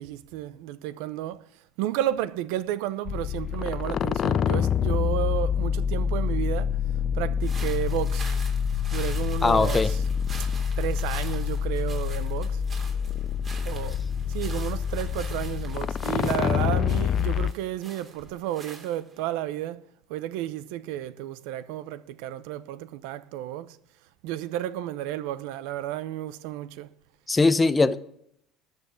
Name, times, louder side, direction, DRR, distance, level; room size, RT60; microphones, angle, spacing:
voice 1, 0.0-1.4 1.8-6.7 7.1-8.3 8.9-10.0 10.8-12.6 13.6-14.0 14.3-19.8 20.1-23.8 24.2-26.9, right 13 dB, 80° right, 0.7 m, -32 dB
sound 1, 3.1-17.5, left 8 dB, 40° left, 0.4 m, -27 dB
sound 2, 7.4-19.3, right 3 dB, 30° right, 3.2 m, -45 dB
voice 2, 9.4-9.9 27.3-28.0, left 3 dB, 15° left, 0.8 m, -20 dB
13.0 x 5.7 x 8.3 m
cardioid pair, 115°, 0 cm